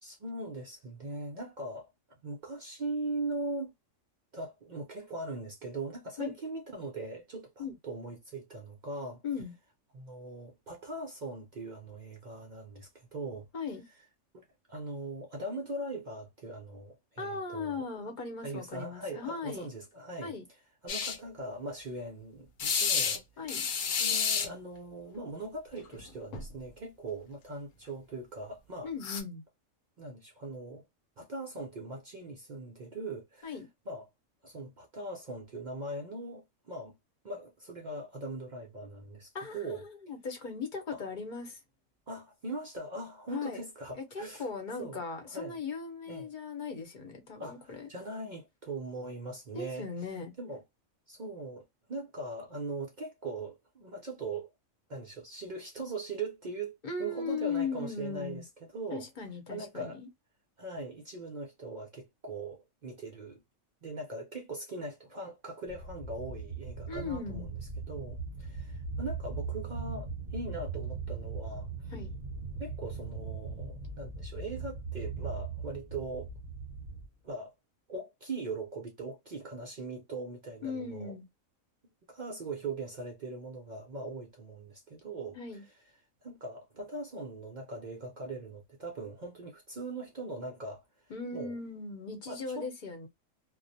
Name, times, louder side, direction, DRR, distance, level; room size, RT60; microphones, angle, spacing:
voice 1, 0.0-1.9 2.2-3.7 4.3-9.2 9.9-13.5 14.3-17.9 18.4-20.3 20.8-23.7 24.0-28.9 30.0-30.8 31.2-33.6 33.9-34.1 34.4-37.0 37.2-39.8 40.9-41.0 42.1-44.5 44.8-45.6 46.1-46.3 47.4-49.9 50.4-50.6 51.1-54.5 54.9-59.1 59.5-60.0 60.6-63.4 63.8-67.5 67.8-71.9 72.6-76.3 77.2-77.5 77.9-81.1 82.1-85.4 86.2-90.8 91.3-91.5 92.3-92.7, right 2 dB, 60° right, 0.5 m, -40 dB
voice 2, 13.5-13.9 17.2-19.7 20.2-20.4 23.4-23.6 28.8-29.4 33.4-33.7 39.3-41.6 43.3-43.6 43.9-47.9 49.5-50.3 56.8-58.4 58.9-59.9 66.9-67.5 71.9-72.1 80.6-81.2 85.3-85.6 91.1-93.1, left 5 dB, 45° left, 0.8 m, -38 dB
sound 1, 20.9-21.2 22.6-23.2 23.5-24.5 25.9-26.0 26.3-26.5 29.0-29.2, left 6 dB, 75° left, 1.0 m, -30 dB
sound 2, 65.7-77.1, right 4 dB, 30° right, 0.9 m, -39 dB
2.3 x 2.0 x 2.6 m
omnidirectional pair, 1.4 m